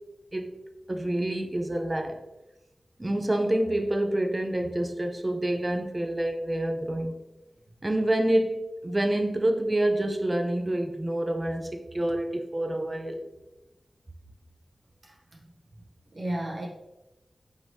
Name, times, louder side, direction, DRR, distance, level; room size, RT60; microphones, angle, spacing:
voice 1, 0.9-2.2 3.0-7.1 7.8-13.2, right 1 dB, 25° right, 4 dB, 0.4 m, -27 dB
voice 2, 15.1-15.4 16.1-16.7, right 1 dB, 55° right, -4 dB, 0.8 m, -33 dB
4.7 x 3.1 x 2.7 m, 0.99 s
wide cardioid pair, 100°, 0 cm